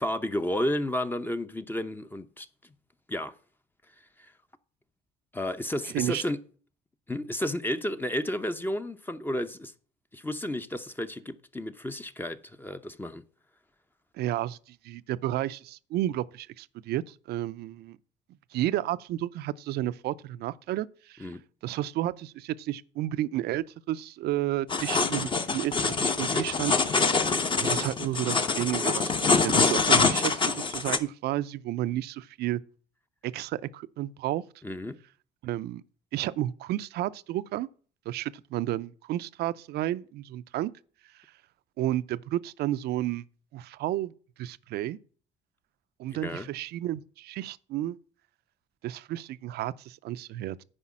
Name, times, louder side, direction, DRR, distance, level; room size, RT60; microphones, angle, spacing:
voice 1, 0.0-2.5 3.1-3.3 4.2-4.3 5.3-6.4 7.1-9.7 10.1-13.2 21.2-21.4 34.6-35.0 46.1-46.5, left 1 dB, 10° left, 0.7 m, -32 dB
voice 2, 14.2-18.0 18.5-21.3 21.6-26.8 27.6-32.6 33.2-34.4 35.4-35.8 36.1-37.7 38.1-40.7 41.8-43.2 43.5-44.1 44.4-45.0 46.0-48.0 48.8-50.6, right 14 dB, 75° right, 0.5 m, -32 dB
sound 1, 24.7-31.0, left 4 dB, 30° left, 1.0 m, -25 dB
9.8 x 5.0 x 7.3 m
cardioid pair, 110°, 17 cm